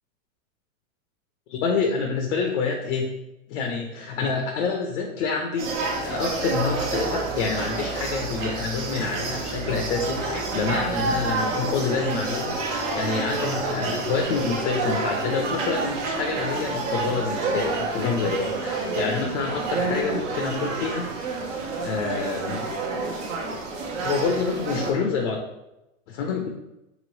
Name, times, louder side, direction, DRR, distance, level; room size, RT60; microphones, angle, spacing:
voice 1, 1.5-3.1 3.5-5.7 6.0-21.1 21.8-22.7 24.0-25.4 26.1-26.5, left 4 dB, 60° left, 2 dB, 0.6 m, -27 dB
sound 1, 5.6-24.9, right 3 dB, 60° right, 0.9 m, -29 dB
sound 2, 6.5-22.3, right 6 dB, 80° right, 0.6 m, -43 dB
sound 3, 9.0-9.8 10.5-10.7 11.0-11.1 11.7-21.1, right 4 dB, 30° right, 0.6 m, -43 dB
3.0 x 3.0 x 3.1 m, 0.93 s
hypercardioid pair, 135°, 41 cm